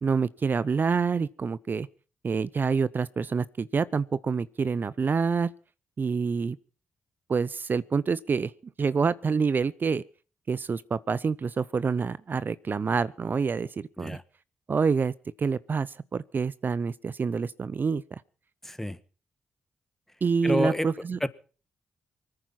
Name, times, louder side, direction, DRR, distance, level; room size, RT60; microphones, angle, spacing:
voice 1, 0.0-1.9 2.2-5.5 6.0-6.6 7.3-8.5 8.8-10.0 10.5-14.2 14.7-18.2 20.2-21.2, right 5 dB, 50° right, 0.7 m, -27 dB
voice 2, 18.6-19.0 20.4-20.9 21.2-21.3, left 1 dB, 5° left, 1.6 m, -28 dB
24.5 x 9.8 x 5.9 m
hypercardioid pair, 40°, 4 cm